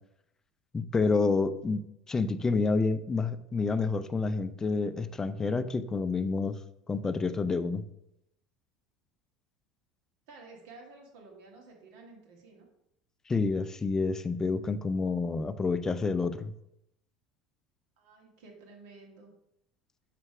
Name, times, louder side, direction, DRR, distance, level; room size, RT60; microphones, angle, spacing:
voice 1, 0.7-6.6 6.9-7.8 13.3-16.5, left 4 dB, 20° left, 11 dB, 0.4 m, -29 dB
voice 2, 10.3-12.7 18.0-19.3, right 3 dB, 70° right, 1 dB, 1.7 m, -52 dB
6.2 x 3.3 x 4.8 m, 0.81 s
supercardioid pair, 100°, 3 cm